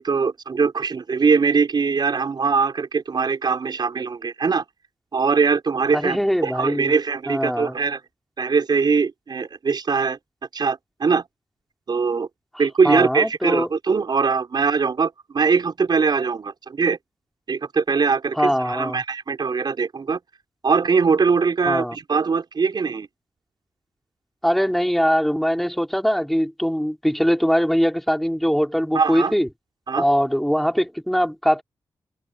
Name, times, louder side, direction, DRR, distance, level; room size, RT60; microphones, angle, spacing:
voice 1, 0.0-4.6 5.1-8.0 8.4-10.2 10.5-11.2 11.9-12.3 12.6-17.0 17.5-20.2 20.6-23.1 28.9-29.3 29.9-30.1, right 5 dB, 60° right, 4.8 m, -21 dB
voice 2, 5.9-6.9 7.3-7.7 12.8-13.7 18.4-19.0 21.6-22.0 24.4-29.5 30.0-31.6, equal, ahead, 4.4 m, -21 dB
cardioid pair, 65°, 8 cm